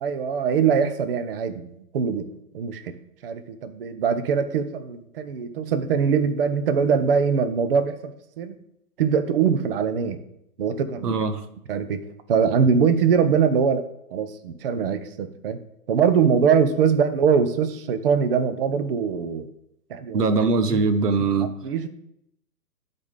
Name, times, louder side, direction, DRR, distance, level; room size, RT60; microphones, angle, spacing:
voice 1, 0.0-2.3 2.5-3.0 3.2-8.6 9.0-10.2 10.6-11.2 11.7-12.0 12.3-13.9 14.1-15.6 15.9-19.5 19.9-20.3 20.7-20.8 21.6-21.9, right 6 dB, 40° right, 10 dB, 0.6 m, -22 dB
voice 2, 11.0-11.4 20.1-21.5, right 4 dB, 80° right, 11 dB, 1.3 m, -21 dB
12.0 x 4.2 x 5.2 m, 0.78 s
hypercardioid pair, 155°, 46 cm